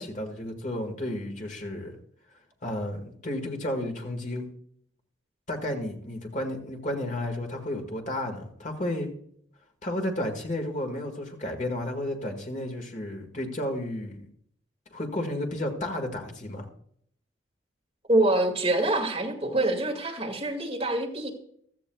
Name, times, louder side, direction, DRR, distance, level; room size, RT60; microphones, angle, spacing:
voice 1, 0.0-2.0 2.6-4.4 5.5-9.1 9.8-14.3 14.9-16.7, left 1 dB, 40° left, 4 dB, 1.8 m, -32 dB
voice 2, 18.1-21.3, right 1 dB, 30° right, 1 dB, 2.1 m, -25 dB
15.5 x 13.0 x 2.3 m, 0.66 s
head